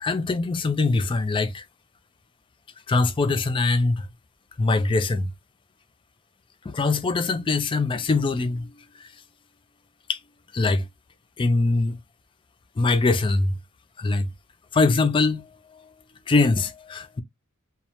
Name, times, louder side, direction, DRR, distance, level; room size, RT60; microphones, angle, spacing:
voice 1, 0.0-1.6 2.9-4.1 4.6-5.3 6.7-8.7 9.0-9.1 10.1-10.2 10.5-10.9 11.4-12.0 12.8-13.5 14.0-14.3 14.7-15.4 16.3-17.2, left 3 dB, 25° left, 0.3 m, -22 dB
2.1 x 2.0 x 2.8 m
head